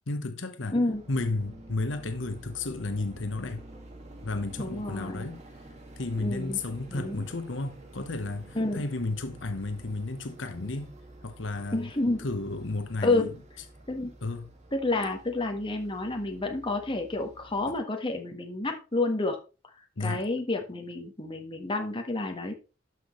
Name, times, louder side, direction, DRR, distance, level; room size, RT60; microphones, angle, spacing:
voice 1, 0.1-0.8 1.1-3.6 4.2-5.4 6.0-10.9 11.2-11.9 12.2-13.3 14.2-14.5 20.0-20.3, left 2 dB, 85° left, 1.1 m, -33 dB
sound 1, 0.9-17.8, right 1 dB, 35° right, 2.0 m, -49 dB
voice 2, 4.6-5.3 6.2-6.6 6.9-7.2 8.5-8.8 11.7-12.2 13.0-13.3 13.9-14.1 14.7-19.4 20.0-22.5, left 2 dB, 25° left, 1.4 m, -29 dB
12.0 x 6.1 x 3.2 m
head